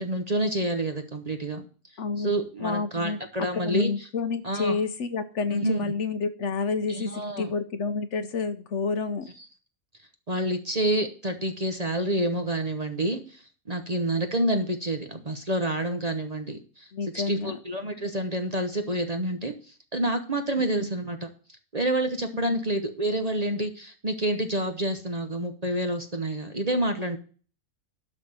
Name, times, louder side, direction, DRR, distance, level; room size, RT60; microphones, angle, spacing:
voice 1, 0.0-1.6 2.2-3.9 4.4-4.8 5.5-5.8 6.9-7.5 10.3-16.9 17.1-21.3 21.7-27.2, right 1 dB, 30° right, 7 dB, 0.9 m, -28 dB
voice 2, 2.0-2.3 2.6-3.2 3.5-9.3 16.9-17.6 20.8-20.9 22.3-22.6, left 4 dB, 60° left, 11 dB, 1.0 m, -29 dB
11.5 x 4.1 x 7.9 m, 0.40 s
omnidirectional pair, 1.5 m